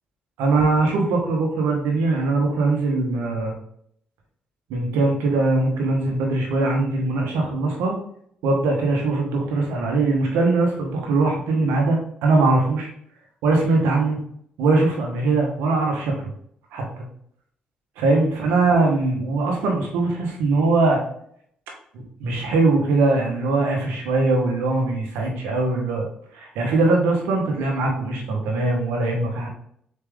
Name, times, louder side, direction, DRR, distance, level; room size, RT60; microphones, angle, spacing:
voice 1, 0.4-3.5 4.7-7.9 8.4-12.9 13.4-14.2 14.6-16.1 16.7-16.8 18.0-21.0 21.9-26.1 26.3-29.5, right 3 dB, 80° right, 1 dB, 1.1 m, -21 dB
4.3 x 3.4 x 3.5 m, 0.67 s
hypercardioid pair, 50°, 4 cm